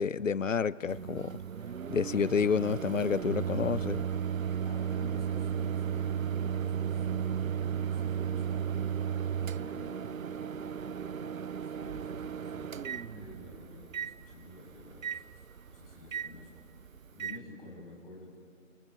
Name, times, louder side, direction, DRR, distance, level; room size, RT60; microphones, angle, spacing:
voice 1, 0.0-1.4 1.9-4.1, left 6 dB, 70° left, 21 dB, 0.7 m, -29 dB
Microwave oven, 0.9-17.4, right 8 dB, 75° right, 0.6 m, -35 dB
sound 1, 1.3-7.2, right 1 dB, 50° right, 7.9 m, -59 dB
voice 2, 4.6-7.2 7.8-8.7 9.6-18.4, left 2 dB, 40° left, -1 dB, 7.6 m, -51 dB
29.5 x 28.5 x 5.9 m, 2.3 s
figure-of-eight pair, 150°, 40 cm